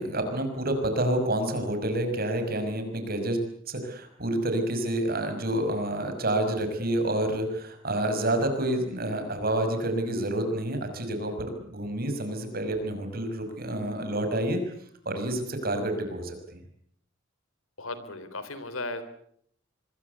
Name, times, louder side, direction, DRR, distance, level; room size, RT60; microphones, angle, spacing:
voice 1, 0.0-14.6 15.1-16.6, right 1 dB, 45° right, 7 dB, 5.9 m, -28 dB
voice 2, 17.8-19.0, left 2 dB, 85° left, 13 dB, 3.6 m, -36 dB
26.0 x 22.0 x 8.2 m, 0.67 s
head